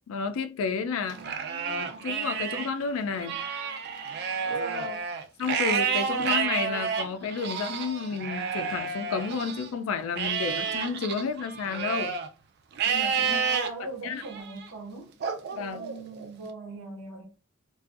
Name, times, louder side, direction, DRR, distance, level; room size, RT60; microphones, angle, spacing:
voice 1, 0.1-1.2 1.7-3.4 5.4-12.2 12.9-13.4 14.0-14.2 15.5-15.8, left 5 dB, 75° left, 0.3 m, -31 dB
Livestock farm animals working animals, 1.1-2.7 3.1-9.7 10.2-12.3 12.8-13.7 14.2-14.7 15.2-16.3, right 6 dB, 50° right, 0.3 m, -30 dB
voice 2, 1.1-2.1 4.4-5.1 13.2-15.1 15.5-17.3, right 2 dB, 85° right, 1.0 m, -40 dB
2.5 x 2.3 x 2.4 m
head